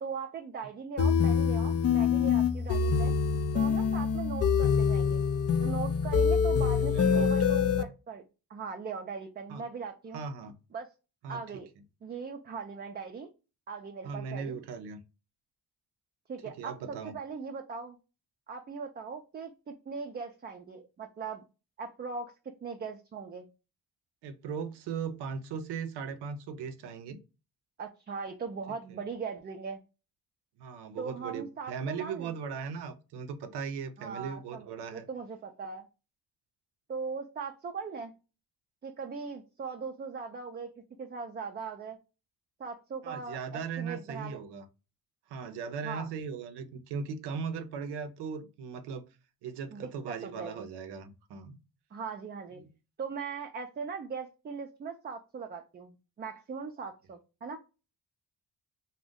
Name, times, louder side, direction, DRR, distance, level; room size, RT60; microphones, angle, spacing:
voice 1, 0.0-3.2 3.5-5.2 5.6-8.2 8.5-10.2 10.7-10.9 11.3-11.7 12.0-13.3 13.7-14.6 16.3-18.0 18.5-21.4 21.8-23.5 27.8-29.8 31.0-32.3 34.0-35.9 36.9-38.1 38.8-40.7 41.0-42.0 42.6-44.4 45.8-46.1 49.7-50.7 51.9-52.6 53.0-57.6, right 5 dB, 25° right, 0.4 m, -39 dB
sound 1, 1.0-7.8, left 6 dB, 40° left, 0.4 m, -25 dB
voice 2, 6.8-7.3 9.5-9.6 10.1-10.6 11.2-11.6 14.0-15.0 16.6-17.2 24.2-27.2 28.9-29.0 30.6-35.1 43.0-44.7 45.3-49.0 49.4-51.6 52.6-52.7, right 6 dB, 85° right, 0.6 m, -38 dB
2.5 x 2.1 x 3.5 m
cardioid pair, 75°, 39 cm